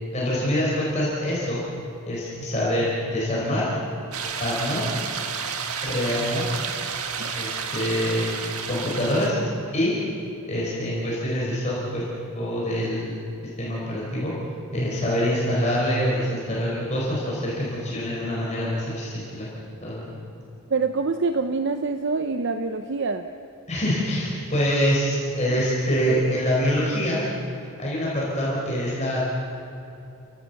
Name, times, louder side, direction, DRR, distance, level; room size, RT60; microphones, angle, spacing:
voice 1, 0.1-1.6 2.1-3.7 4.4-4.9 5.8-6.4 7.3-8.2 8.7-9.4 9.7-9.9 10.5-12.1 12.3-13.2 13.6-14.3 14.7-19.5 19.8-20.2 23.7-27.2 27.8-29.2, equal, 30° left, -6 dB, 4.5 m, -25 dB
sound 1, 4.1-9.3, right 6 dB, 80° right, 1.7 m, -31 dB
voice 2, 7.2-7.6 20.7-23.3 25.5-25.6, right 4 dB, 55° right, 8 dB, 0.7 m, -26 dB
30.0 x 16.0 x 7.1 m, 2.8 s
head